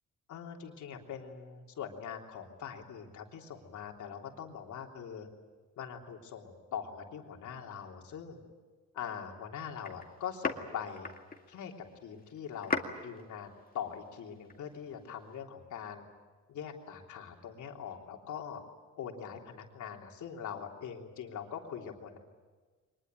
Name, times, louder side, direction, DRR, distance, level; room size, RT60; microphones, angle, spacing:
voice 1, 0.3-5.3 5.8-8.4 8.9-11.1 11.5-11.7 12.0-16.1 16.5-18.6 19.0-22.2, left 8 dB, 75° left, 1 dB, 3.4 m, -42 dB
sound 1, 9.8-15.4, left 4 dB, 30° left, 2.3 m, -41 dB
23.5 x 21.0 x 9.1 m, 1.4 s
cardioid pair, 90°, 30 cm